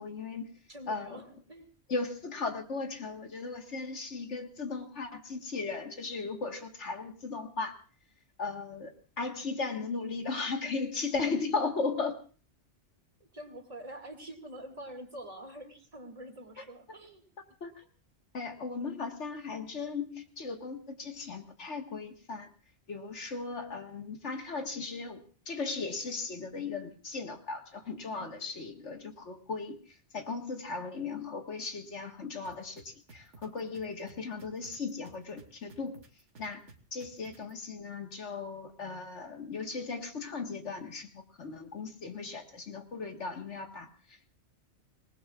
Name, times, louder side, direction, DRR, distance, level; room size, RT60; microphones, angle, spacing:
voice 1, 0.0-0.6 0.9-1.2 1.9-7.8 8.4-12.2 16.6-16.7 17.6-17.9 18.3-22.5 22.9-36.0 36.4-36.6 36.9-44.4, left 4 dB, 80° left, 4 dB, 1.9 m, -37 dB
voice 2, 0.7-1.7 13.2-17.2 28.2-28.3, right 1 dB, 30° right, 3 dB, 2.4 m, -46 dB
sound 1, 32.4-37.5, right 3 dB, 80° right, 1.9 m, -54 dB
26.0 x 18.5 x 2.4 m, 0.39 s
omnidirectional pair, 1.2 m